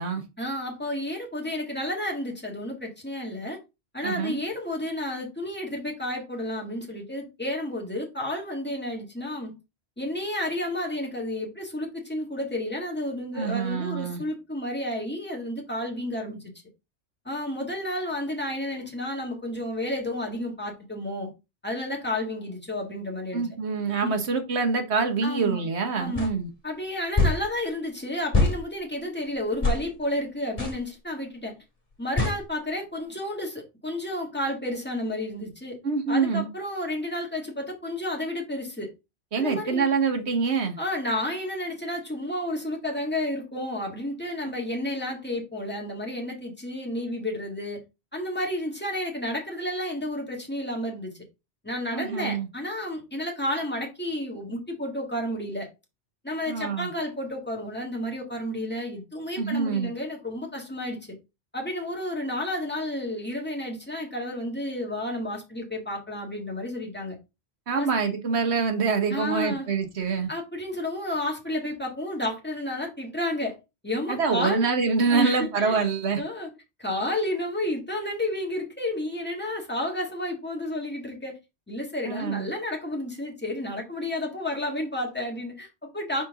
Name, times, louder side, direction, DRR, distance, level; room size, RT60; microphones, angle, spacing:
voice 1, 0.4-3.6 3.9-9.5 10.0-16.4 17.3-21.3 21.6-23.4 24.0-24.2 25.2-25.6 26.0-26.3 26.6-31.5 32.0-35.8 36.1-38.9 39.4-39.9 40.8-47.8 48.1-51.1 51.6-55.7 56.2-61.0 61.5-67.2 67.7-67.9 69.1-69.7 70.3-73.6 73.8-74.6 75.1-75.8 76.2-76.5 76.8-81.4 81.7-86.2, left 1 dB, 10° left, 1.7 m, -31 dB
voice 2, 4.0-4.4 13.4-14.2 23.3-26.5 35.8-36.5 39.3-40.8 51.9-52.5 56.5-56.9 59.4-59.9 67.7-70.3 74.1-76.2 82.0-82.5, right 5 dB, 75° right, 1.4 m, -25 dB
sound 1, 26.2-26.3 27.2-27.4 28.3-28.6 29.6-29.8 30.6-30.8 32.2-32.4, left 3 dB, 30° left, 2.0 m, -22 dB
5.9 x 4.5 x 3.6 m
omnidirectional pair, 1.1 m